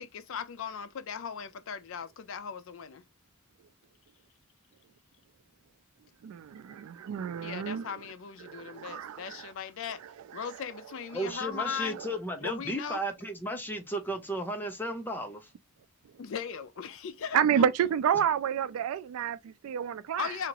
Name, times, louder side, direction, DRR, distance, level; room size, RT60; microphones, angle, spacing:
voice 1, 0.0-3.0 7.4-10.0 10.3-12.0 12.4-13.0 16.2-17.4 20.2-20.5, left 7 dB, 65° left, 0.4 m, -38 dB
voice 2, 6.2-7.9 8.4-9.5 11.9-12.2 17.3-20.3, right 8 dB, 85° right, 0.3 m, -29 dB
voice 3, 11.1-15.5, right 1 dB, 10° left, 0.6 m, -34 dB
2.8 x 2.5 x 2.9 m
head